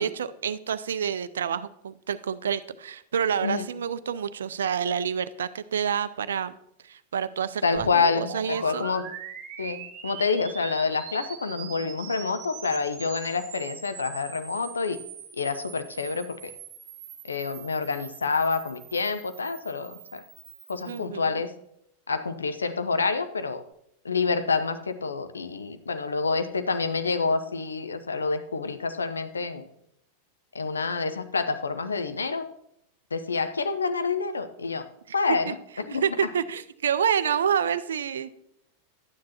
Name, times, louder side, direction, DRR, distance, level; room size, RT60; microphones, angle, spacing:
voice 1, 0.0-6.6 6.8-7.9 8.2-8.9 20.9-21.4 35.1-35.4 35.9-38.3, right 8 dB, 65° right, 15 dB, 0.4 m, -28 dB
voice 2, 7.6-9.1 9.6-15.0 15.4-16.5 17.2-20.2 20.7-21.5 22.1-23.6 24.0-29.7 30.5-32.5 33.1-34.8 35.1-36.0, left 4 dB, 75° left, 10 dB, 0.6 m, -28 dB
sound 1, 7.7-21.1, right 9 dB, 45° right, 1.3 m, -42 dB
12.0 x 9.4 x 2.8 m, 0.75 s
figure-of-eight pair, 90°, 0 cm